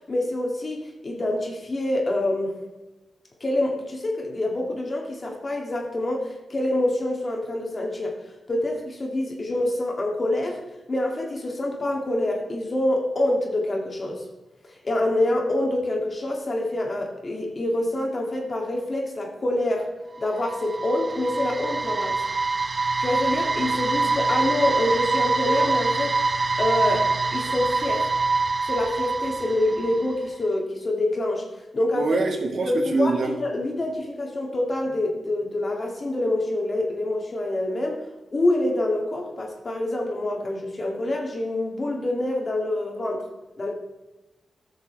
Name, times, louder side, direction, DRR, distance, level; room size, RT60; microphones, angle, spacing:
voice 1, 0.1-2.5 3.4-8.2 8.5-10.6 10.9-14.3 14.8-19.9 20.2-22.2 23.0-26.2 26.6-28.1 28.6-31.5 31.7-32.1 32.7-38.0 38.3-43.3 43.6-43.7, left 1 dB, 40° left, 0 dB, 2.4 m, -26 dB
sound 1, 20.2-30.2, right 3 dB, 40° right, 0.7 m, -25 dB
voice 2, 31.9-33.3, right 3 dB, 65° right, 2 dB, 1.7 m, -24 dB
14.0 x 6.6 x 3.4 m, 1.1 s
cardioid pair, 50°, 0 cm